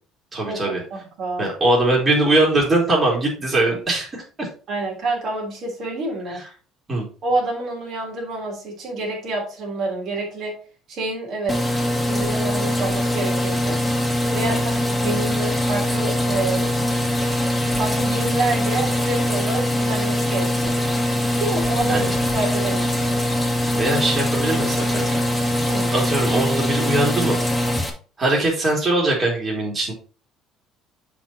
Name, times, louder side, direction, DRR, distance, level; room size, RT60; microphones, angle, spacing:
voice 1, 0.3-0.8 1.4-4.5 6.3-6.4 6.9-7.1 14.3-14.6 21.8-22.1 23.7-25.2 25.9-27.4 28.2-29.9, right 2 dB, 25° right, -3 dB, 3.0 m, -21 dB
voice 2, 0.9-1.5 4.7-6.4 7.2-10.6 10.9-11.6 12.0-13.8 14.3-16.7 17.8-20.8 21.3-23.1 25.6-25.9, right 2 dB, 50° right, -2 dB, 3.2 m, -28 dB
sound 1, 11.5-27.9, left 1 dB, 5° left, 1.7 m, -22 dB
7.6 x 4.4 x 4.2 m, 0.37 s
cardioid pair, 130°, 0 cm